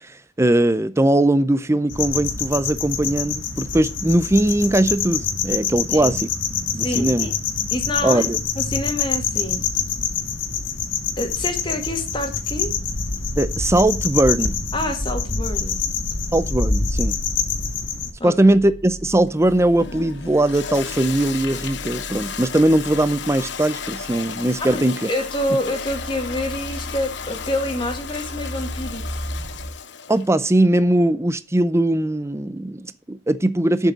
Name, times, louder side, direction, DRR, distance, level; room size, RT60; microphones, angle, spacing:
voice 1, 0.1-6.3 6.7-7.3 8.0-8.4 13.4-14.5 16.3-17.2 18.2-25.1 30.1-33.9, right 1 dB, 15° right, 0.6 m, -20 dB
sound 1, 1.9-18.1, left 5 dB, 85° left, 1.7 m, -25 dB
voice 2, 6.8-7.3 7.7-8.3 8.6-9.6 11.2-12.7 14.7-15.8 18.2-18.4 24.6-29.1, left 1 dB, 25° left, 1.8 m, -27 dB
sound 2, 14.0-29.7, equal, 65° right, 2.0 m, -38 dB
Toilet flush, 19.3-30.3, left 6 dB, 65° left, 0.9 m, -34 dB
7.5 x 6.6 x 7.8 m
head